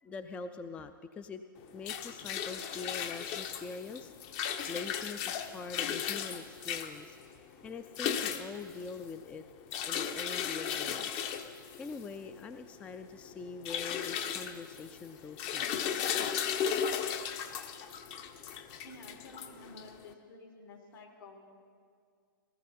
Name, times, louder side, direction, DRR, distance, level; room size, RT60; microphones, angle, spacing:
voice 1, 0.0-1.4 1.7-7.2 7.6-9.5 9.9-16.1, left 4 dB, 10° left, 10 dB, 0.3 m, -44 dB
sound 1, 1.6-20.1, left 8 dB, 35° left, 0.7 m, -36 dB
voice 2, 18.8-21.4, left 2 dB, 70° left, 1 dB, 3.1 m, -51 dB
18.5 x 13.5 x 4.2 m, 2.1 s
hypercardioid pair, 135°, 12 cm